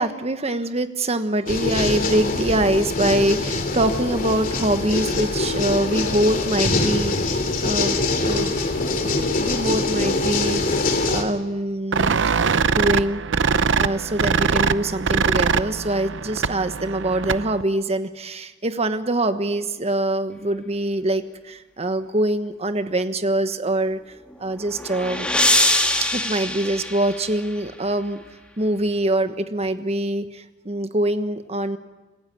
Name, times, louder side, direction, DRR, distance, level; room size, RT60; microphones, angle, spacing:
voice 1, 0.0-8.5 9.0-10.8 11.1-12.2 12.7-13.2 13.8-25.3 26.1-28.2 28.6-31.8, right 1 dB, 35° right, 9 dB, 1.3 m, -24 dB
sound 1, 1.5-11.2, left 2 dB, 50° left, 2.9 m, -23 dB
sound 2, 11.9-17.6, right 5 dB, 75° right, 0.7 m, -22 dB
sound 3, 24.3-27.7, left 1 dB, 5° left, 2.4 m, -23 dB
26.5 x 15.5 x 9.2 m, 1.2 s
head